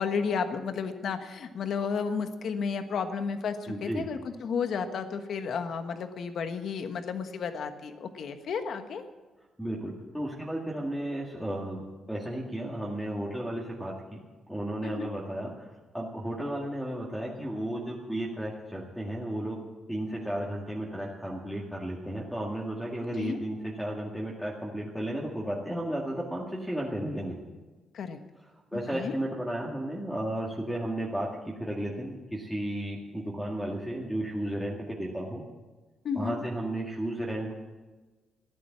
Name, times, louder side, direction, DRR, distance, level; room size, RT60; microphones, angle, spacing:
voice 1, 0.0-9.0 14.8-15.1 23.2-23.4 27.9-28.2 28.7-29.1 36.0-36.4, left 6 dB, 60° left, 8 dB, 1.3 m, -32 dB
voice 2, 3.7-4.1 9.6-15.7 15.9-19.6 19.9-27.4 28.7-31.3 31.6-35.4 36.2-37.5, right 1 dB, ahead, -5 dB, 1.9 m, -33 dB
14.5 x 11.0 x 7.4 m, 1.2 s
cardioid pair, 130°, 0 cm